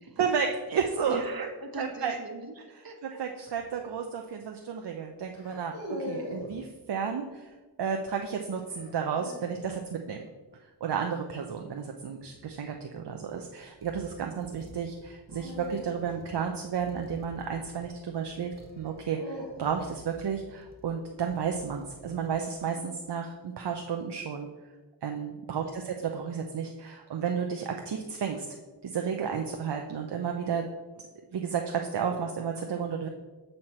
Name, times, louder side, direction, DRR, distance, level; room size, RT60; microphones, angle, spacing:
voice 1, 0.2-1.2 1.8-2.1 3.2-5.8 6.1-7.5 7.8-10.3 10.8-24.5 25.0-28.5 28.8-30.7 31.3-33.1, right 6 dB, 70° right, 3 dB, 0.7 m, -32 dB
voice 2, 1.0-3.2 25.5-25.9, right 3 dB, 55° right, 3 dB, 1.3 m, -41 dB
sound 1, 3.5-3.8 5.3-6.6 8.7-9.7 12.1-12.5 15.3-17.7 18.7-20.0, left 1 dB, 75° left, 2.0 m, -41 dB
sound 2, 12.8-23.1, equal, 20° right, 1.3 m, -54 dB
7.7 x 4.3 x 4.3 m, 1.2 s
cardioid pair, 45°, 42 cm